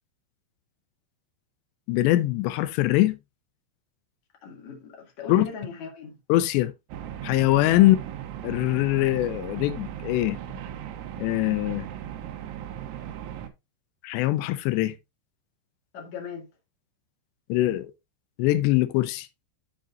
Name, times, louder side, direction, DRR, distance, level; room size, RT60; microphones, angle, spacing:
voice 1, 1.9-3.2 5.3-5.5 6.3-6.7 7.2-8.0 8.4-10.6 11.2-11.9 14.0-14.9 17.5-17.9 18.4-19.3, left 16 dB, 80° left, 2.7 m, -22 dB
voice 2, 4.4-6.2 7.8-7.9 15.9-16.5, left 6 dB, 50° left, 2.6 m, -39 dB
sound 1, 6.9-13.5, right 10 dB, 85° right, 3.3 m, -37 dB
13.0 x 5.0 x 2.5 m
omnidirectional pair, 5.3 m